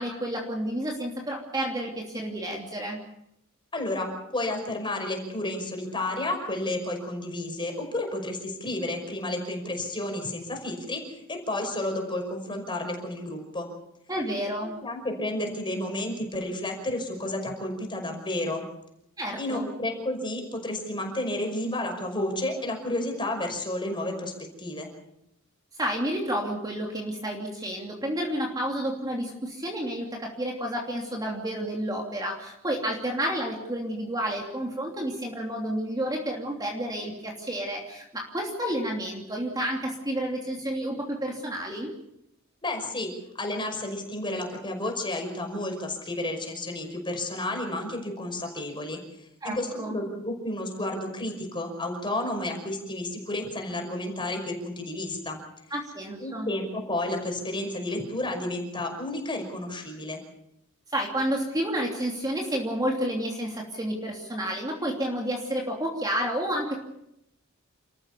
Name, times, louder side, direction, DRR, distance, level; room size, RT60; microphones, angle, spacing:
voice 1, 0.0-3.0 14.1-14.8 19.2-19.7 25.8-41.9 49.4-50.0 55.7-56.5 60.9-66.8, right 1 dB, 20° right, 0 dB, 2.9 m, -30 dB
voice 2, 3.7-13.7 14.6-18.6 19.4-24.3 24.6-24.9 42.6-43.1 43.4-49.0 49.4-55.4 56.2-60.2, left 1 dB, 20° left, 3 dB, 5.6 m, -31 dB
29.5 x 14.5 x 7.0 m, 0.81 s
head